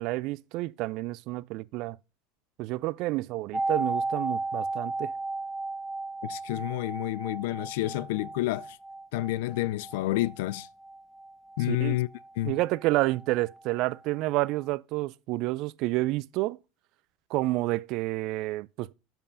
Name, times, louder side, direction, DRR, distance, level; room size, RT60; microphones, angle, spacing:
voice 1, 0.0-2.0 2.6-5.1 11.7-12.0 12.4-16.6 17.3-18.9, right 19 dB, 60° right, 0.4 m, -29 dB
sound 1, 3.5-13.3 13.5-13.6, right 2 dB, 5° left, 1.3 m, -35 dB
voice 2, 6.2-8.8 9.1-10.7 11.6-12.1 12.4-12.6, left 17 dB, 70° left, 0.4 m, -29 dB
9.0 x 7.5 x 5.6 m
hypercardioid pair, 80°, 0 cm